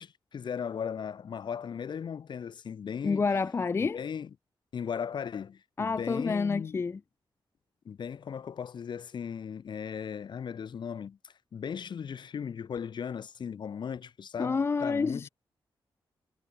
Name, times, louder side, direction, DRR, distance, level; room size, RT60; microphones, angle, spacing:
voice 1, 0.0-3.2 3.8-4.3 4.7-6.8 7.9-15.3, left 7 dB, 60° left, 2.1 m, -37 dB
voice 2, 3.0-4.0 5.8-7.0 14.4-15.3, left 4 dB, 30° left, 0.4 m, -28 dB
wide cardioid pair, 150°, 9 cm